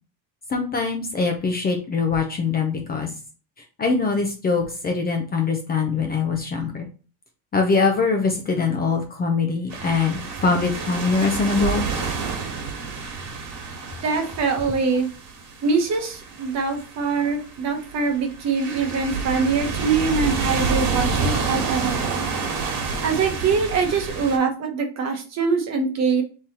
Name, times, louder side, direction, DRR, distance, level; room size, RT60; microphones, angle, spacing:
voice 1, 0.5-3.1 3.8-6.9 7.5-11.8, left 4 dB, 20° left, 3 dB, 0.6 m, -23 dB
sound 1, 9.7-24.4, right 5 dB, 55° right, 1.6 m, -29 dB
voice 2, 14.0-15.1 15.6-22.2 23.0-26.2, right 4 dB, 40° right, 4 dB, 1.0 m, -23 dB
3.7 x 3.2 x 4.2 m, 0.36 s
cardioid pair, 155°, 42 cm